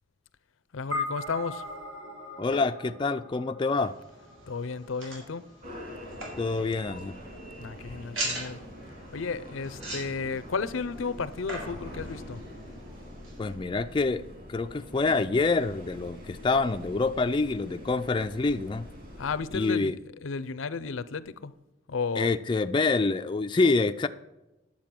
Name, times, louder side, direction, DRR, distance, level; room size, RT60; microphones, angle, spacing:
voice 1, 0.7-1.7 4.5-5.5 7.6-8.6 9.1-12.4 19.2-21.6 21.9-22.3, left 4 dB, 80° left, 0.6 m, -33 dB
sound 1, 0.9-5.5, left 2 dB, 70° right, 3.3 m, -39 dB
voice 2, 2.4-3.9 6.4-7.2 13.4-14.2 14.5-18.9 19.5-20.0 22.2-24.1, left 3 dB, 25° left, 0.3 m, -26 dB
sound 2, 3.7-13.5, right 1 dB, 85° right, 4.6 m, -42 dB
sound 3, 5.6-19.5, equal, 45° right, 3.2 m, -44 dB
10.5 x 7.4 x 6.0 m
head